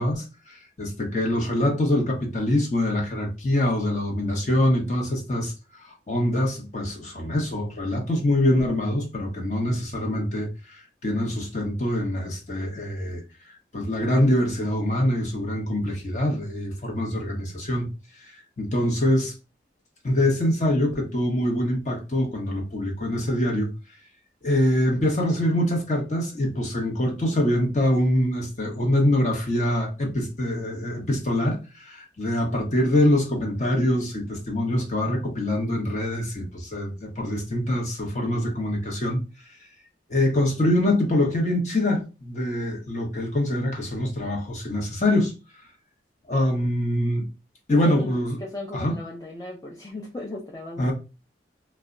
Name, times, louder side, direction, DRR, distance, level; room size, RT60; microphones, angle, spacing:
voice 1, 0.0-5.5 5.8-13.2 13.7-17.9 18.6-19.3 20.0-23.7 24.4-39.2 40.1-45.3 46.3-47.2 47.7-48.4 48.7-48.9 50.8-50.9, left 1 dB, 40° left, 0.8 m, -24 dB
voice 2, 47.7-50.9, left 2 dB, 20° left, 0.4 m, -37 dB
2.2 x 2.0 x 3.6 m
head